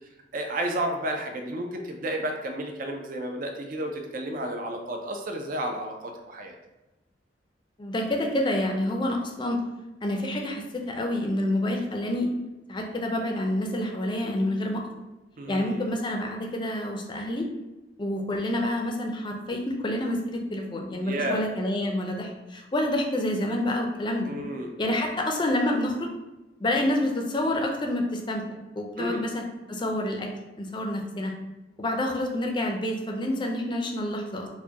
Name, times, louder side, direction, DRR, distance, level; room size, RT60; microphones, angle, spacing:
voice 1, 0.3-6.6 15.4-15.8 21.0-21.5 24.2-24.7 29.0-29.3, right 1 dB, 50° right, 3 dB, 0.4 m, -32 dB
voice 2, 7.8-9.6 10.0-12.3 12.7-14.8 15.5-17.5 18.0-24.3 24.8-26.1 26.6-28.4 28.8-30.3 30.6-31.3 31.8-34.5, left 1 dB, 25° left, 2 dB, 0.5 m, -28 dB
4.6 x 2.2 x 2.8 m, 1.0 s
head